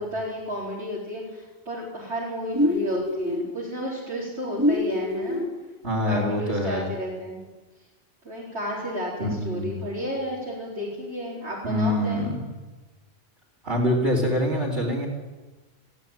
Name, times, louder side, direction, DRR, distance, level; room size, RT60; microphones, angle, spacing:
voice 1, 0.0-5.4 6.1-7.4 8.2-12.3, equal, 85° right, -7 dB, 5.0 m, -32 dB
sound 1, 2.5-3.5 4.6-5.5, left 1 dB, 15° right, 2.1 m, -24 dB
voice 2, 5.8-6.9 9.2-9.8 11.6-12.4 13.6-15.1, left 1 dB, 60° right, -7 dB, 3.9 m, -25 dB
20.0 x 16.0 x 9.1 m, 1.2 s
omnidirectional pair, 1.1 m